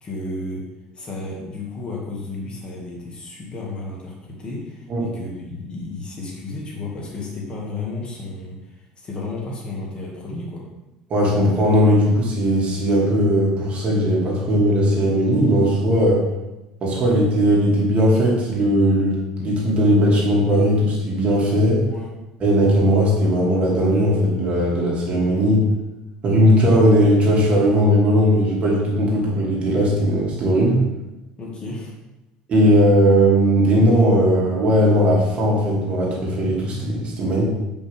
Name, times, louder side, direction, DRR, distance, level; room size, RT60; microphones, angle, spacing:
voice 1, 0.0-0.7 0.9-10.6 21.9-22.1 31.4-31.9, left 2 dB, 35° left, -2 dB, 2.1 m, -33 dB
voice 2, 11.1-16.2 16.8-21.8 22.4-25.6 26.2-30.8 32.5-37.4, equal, 45° right, -3 dB, 2.6 m, -18 dB
8.5 x 5.4 x 3.6 m, 1.0 s
supercardioid pair, 95°, 3 cm